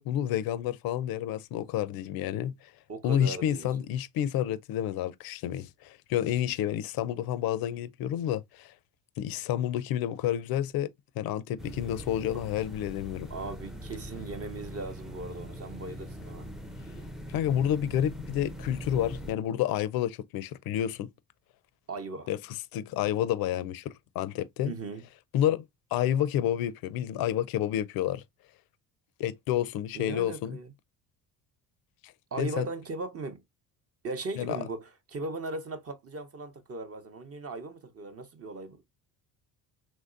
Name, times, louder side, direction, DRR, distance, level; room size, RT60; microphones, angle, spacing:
voice 1, 0.0-2.7 3.0-8.7 9.2-10.9 11.2-13.3 17.3-21.1 22.3-22.4 22.7-24.7 25.3-25.6 25.9-28.2 29.2-30.6 32.4-32.7 34.4-34.6, left 11 dB, 60° left, 0.5 m, -29 dB
voice 2, 2.9-3.7 13.3-16.5 21.9-22.3 24.6-25.0 29.9-30.7 32.3-33.4 34.0-38.8, right 3 dB, 35° right, 0.7 m, -38 dB
sound 1, 11.6-19.3, equal, ahead, 0.4 m, -42 dB
3.1 x 2.6 x 2.4 m
supercardioid pair, 75°, 41 cm